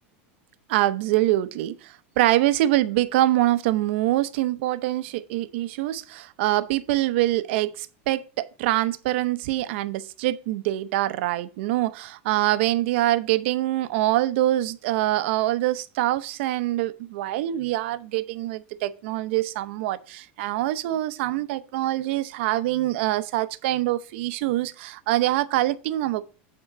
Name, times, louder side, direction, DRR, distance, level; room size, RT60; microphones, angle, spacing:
voice 1, 0.7-26.3, right 15 dB, 70° right, 0.7 m, -24 dB
8.9 x 3.7 x 6.1 m
supercardioid pair, 120°, 7 cm